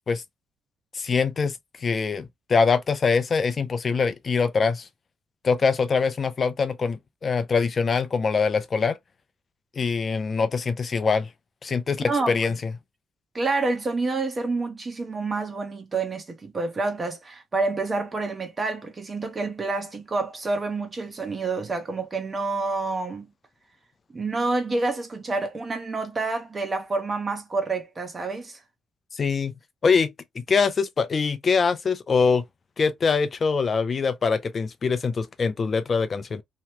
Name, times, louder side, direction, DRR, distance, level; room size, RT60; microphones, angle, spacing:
voice 1, 0.9-4.9 5.4-9.0 9.8-11.3 11.6-12.7 29.1-29.5 29.8-32.4 32.8-36.4, left 5 dB, 40° left, 0.5 m, -23 dB
voice 2, 12.1-12.5 13.3-23.3 24.1-28.6, right 3 dB, 30° right, 1.0 m, -28 dB
2.9 x 2.2 x 3.0 m
cardioid pair, 90°, 0 cm